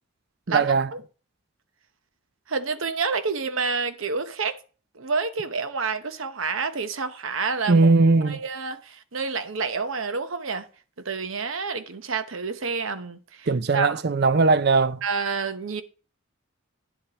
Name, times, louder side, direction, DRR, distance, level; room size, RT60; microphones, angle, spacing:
voice 1, 0.5-0.9 7.7-8.4 13.5-15.0, right 3 dB, 50° right, 0.5 m, -19 dB
voice 2, 2.5-4.6 4.9-7.9 8.2-10.7 11.0-13.5 13.7-13.9 15.0-15.8, right 4 dB, 75° right, 0.9 m, -28 dB
10.0 x 7.8 x 2.9 m
head